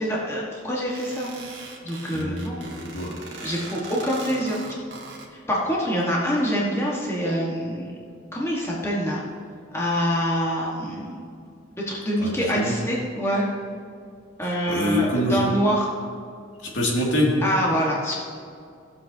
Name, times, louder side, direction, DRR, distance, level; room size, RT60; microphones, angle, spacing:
voice 1, 0.0-1.3 1.8-2.6 3.4-4.6 5.5-7.9 8.3-9.2 9.7-11.2 11.9-13.4 14.4-15.9 17.4-18.1, equal, 15° left, -4 dB, 1.4 m, -25 dB
sound 1, 0.9-5.3, right 3 dB, 65° right, 1.5 m, -40 dB
voice 2, 2.1-3.1 12.2-12.7 14.7-15.4 16.7-17.3, equal, 75° left, -3 dB, 2.3 m, -25 dB
15.5 x 7.5 x 2.8 m, 2.3 s
head